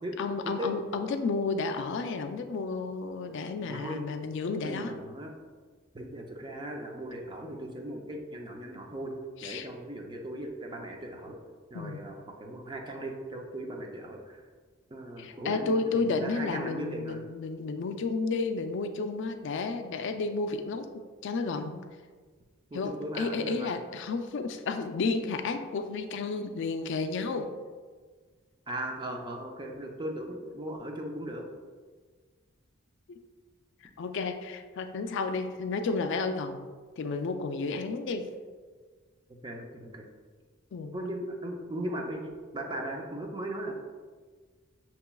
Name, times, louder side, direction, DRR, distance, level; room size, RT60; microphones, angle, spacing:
voice 1, 0.2-5.0 9.4-9.7 11.7-12.0 15.2-21.8 22.7-27.5 33.1-33.2 34.0-36.6 37.0-38.3 40.7-40.9, left 4 dB, 60° left, 7 dB, 0.4 m, -32 dB
voice 2, 3.7-4.0 4.6-5.3 5.9-9.1 9.4-11.4 11.7-14.4 14.9-17.2 22.7-23.7 28.7-31.5 39.3-40.0 40.9-43.7, right 1 dB, 20° right, 2 dB, 0.5 m, -38 dB
6.8 x 2.9 x 2.3 m, 1.5 s
head